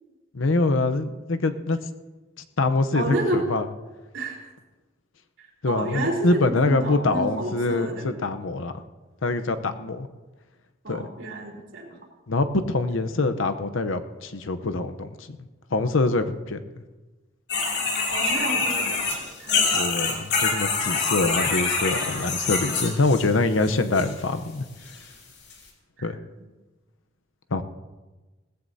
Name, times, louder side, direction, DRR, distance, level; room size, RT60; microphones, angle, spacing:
voice 1, 0.3-1.8 2.6-3.7 5.6-8.7 9.2-10.1 10.9-11.1 12.3-15.4 15.7-16.6 19.7-24.6 26.0-26.2 27.5-27.6, left 2 dB, 90° left, 9 dB, 0.8 m, -24 dB
voice 2, 2.9-3.4 4.1-4.3 5.7-8.2 9.5-9.7 10.8-12.0 18.1-19.7 26.0-26.1, right 1 dB, 75° right, -1 dB, 3.5 m, -30 dB
sound 1, 17.5-23.3 23.6-24.1 24.9-25.0 25.5-25.6, left 4 dB, 60° left, 2.6 m, -25 dB
18.5 x 15.0 x 2.7 m, 1.2 s
head